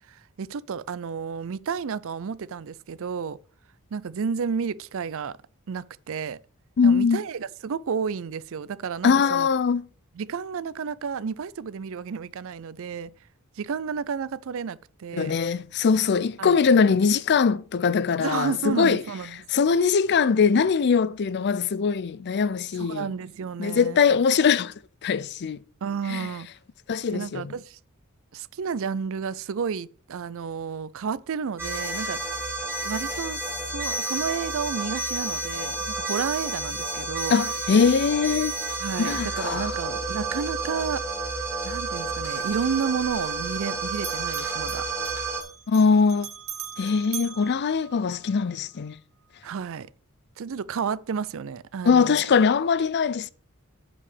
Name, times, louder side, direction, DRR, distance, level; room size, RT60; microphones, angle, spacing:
voice 1, 0.1-3.4 3.9-5.4 5.7-6.4 6.8-9.5 10.2-13.1 13.6-15.3 16.4-16.6 18.2-19.4 22.8-24.0 25.8-26.5 27.1-27.8 28.3-32.2 32.8-37.4 38.8-41.0 41.6-44.9 49.4-49.9 50.4-52.2, right 6 dB, 65° right, 0.4 m, -31 dB
voice 2, 6.8-7.2 9.0-9.8 15.1-19.0 19.5-23.1 23.6-24.7 25.0-25.6 26.1-26.3 26.9-27.5 37.3-38.5 39.0-39.8 45.7-46.3 46.8-49.0 51.9-53.3, left 5 dB, 50° left, 0.4 m, -22 dB
sound 1, 31.6-45.4, right 3 dB, 10° right, 2.1 m, -30 dB
Bell, 43.9-48.4, right 10 dB, 80° right, 1.3 m, -41 dB
8.6 x 4.8 x 6.7 m
head